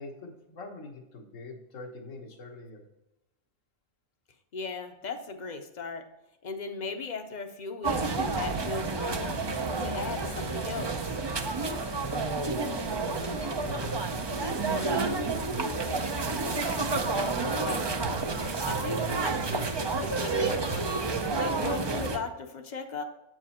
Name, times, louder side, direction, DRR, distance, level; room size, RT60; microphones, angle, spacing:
voice 1, 0.0-2.8 13.0-16.0, left 2 dB, 85° left, 2 dB, 1.6 m, -44 dB
voice 2, 4.5-6.1 6.4-9.4 9.7-11.2 17.4-18.1 18.7-19.7 20.0-23.0, left 4 dB, 45° left, 6 dB, 0.7 m, -37 dB
sound 1, 7.8-22.2, right 3 dB, 45° right, 0.3 m, -30 dB
8.1 x 4.8 x 4.2 m, 0.91 s
omnidirectional pair, 1.3 m